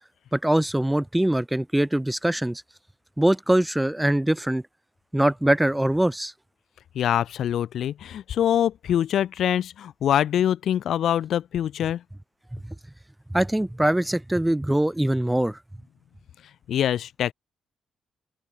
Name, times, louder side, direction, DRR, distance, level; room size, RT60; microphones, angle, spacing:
voice 1, 0.3-2.6 3.2-4.6 5.1-6.3 12.5-12.6 13.3-15.6, right 1 dB, 5° right, 2.1 m, -22 dB
voice 2, 7.0-12.0 16.7-17.3, left 10 dB, 70° left, 0.6 m, -24 dB
open air
cardioid pair, 90°, 0 cm